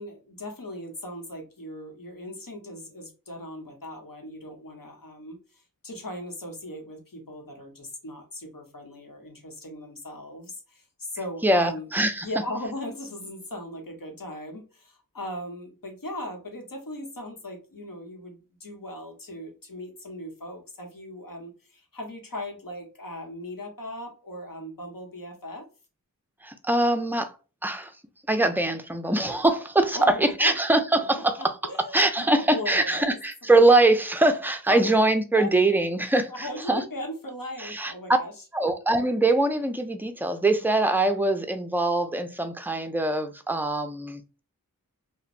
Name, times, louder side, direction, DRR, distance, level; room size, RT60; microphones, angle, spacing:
voice 1, 0.0-11.9 12.2-25.7 29.9-30.5 30.9-31.0 31.4-32.2 32.5-33.2 34.7-34.9 35.3-35.5 36.3-38.3, left 1 dB, 70° left, 1.0 m, -38 dB
voice 2, 11.4-12.3 26.4-27.3 27.6-27.9 28.3-31.5 31.9-36.8 37.6-37.9 38.5-44.2, right 2 dB, 5° right, 0.4 m, -23 dB
2.9 x 2.1 x 2.4 m
wide cardioid pair, 50°, 35 cm